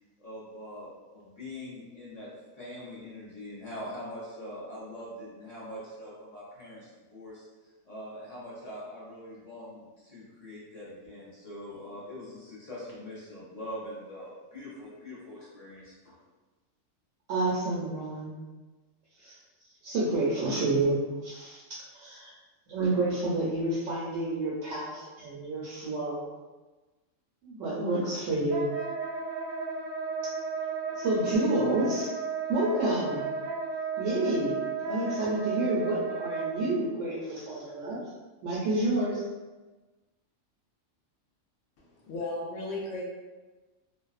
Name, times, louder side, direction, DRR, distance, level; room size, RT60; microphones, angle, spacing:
voice 1, 0.2-7.5 7.8-16.2, left 1 dB, 50° left, -8 dB, 0.4 m, -43 dB
voice 2, 17.3-18.3 19.2-19.3 19.8-21.0 21.2-21.6 21.9-22.3 22.7-26.2 27.4-28.7 31.0-32.1 32.5-33.3 34.0-34.6 34.9-38.0 38.4-39.2, right 2 dB, 70° right, -7 dB, 0.9 m, -29 dB
Wind instrument woodwind instrument, 28.5-36.7, right 4 dB, 55° right, 0.5 m, -34 dB
voice 3, 41.8-43.0, left 2 dB, 70° left, -2 dB, 0.9 m, -35 dB
2.5 x 2.2 x 2.3 m, 1.2 s
omnidirectional pair, 1.4 m